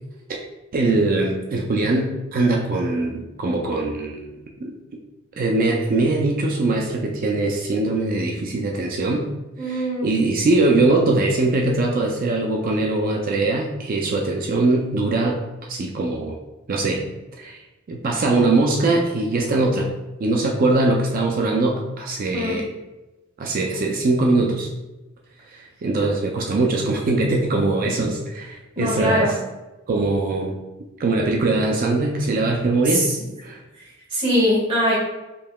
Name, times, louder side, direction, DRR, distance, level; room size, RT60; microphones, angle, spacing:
voice 1, 0.7-4.4 4.6-4.7 5.4-9.3 9.6-15.4 15.7-16.4 16.7-17.0 17.3-17.6 17.9-19.9 20.2-22.7 23.4-24.7 25.5-29.3 29.9-30.6 31.0-33.1 33.4-33.6, right 2 dB, 45° right, 1 dB, 0.4 m, -21 dB
voice 2, 9.6-10.1 22.3-22.6 28.8-29.3 32.9-33.1 34.1-35.0, equal, 25° right, -8 dB, 1.4 m, -21 dB
5.2 x 2.7 x 2.2 m, 1.1 s
head